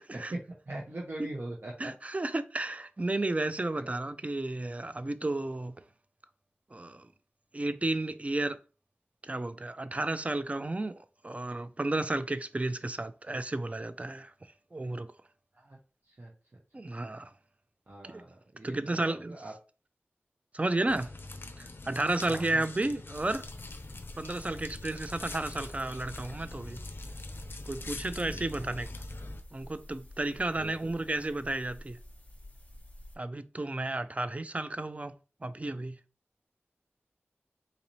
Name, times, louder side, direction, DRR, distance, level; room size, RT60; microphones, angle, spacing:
voice 1, 0.3-1.9 3.8-3.9 15.6-15.8 16.2-16.3 17.9-19.5 22.3-22.6 28.3-28.7 30.6-30.9, right 2 dB, 55° right, 0.8 m, -41 dB
voice 2, 1.8-5.8 6.7-7.0 7.5-8.6 9.2-14.3 14.7-15.1 16.7-17.3 18.0-18.2 18.6-19.4 20.5-21.1 21.6-23.5 24.2-26.8 27.7-28.9 29.5-32.0 33.2-35.1 35.4-36.0, right 2 dB, 35° right, 0.4 m, -32 dB
sound 1, 20.9-29.4, left 2 dB, 60° left, 0.4 m, -43 dB
sound 2, 23.1-33.1, left 1 dB, 35° left, 1.0 m, -50 dB
3.9 x 2.7 x 3.0 m
wide cardioid pair, 45°, 4 cm